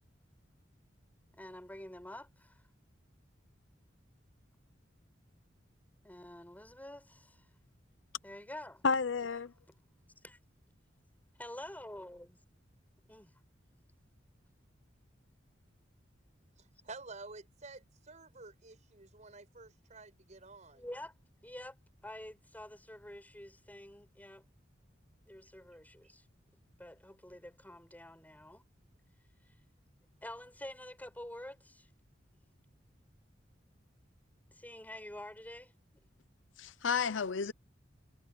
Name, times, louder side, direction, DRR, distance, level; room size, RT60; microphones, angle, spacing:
voice 1, 1.4-2.6 6.0-7.5 8.2-8.8 10.2-10.4 11.4-12.3 13.1-13.3 20.7-21.1 21.4-21.8 22.0-24.4 25.3-26.2 26.8-28.6 30.2-31.9 34.5-35.7, left 1 dB, 10° left, 6.7 m, -48 dB
voice 2, 8.8-9.5 36.6-37.5, left 5 dB, 85° left, 0.7 m, -31 dB
voice 3, 16.6-20.9, right 3 dB, 40° right, 5.6 m, -51 dB
head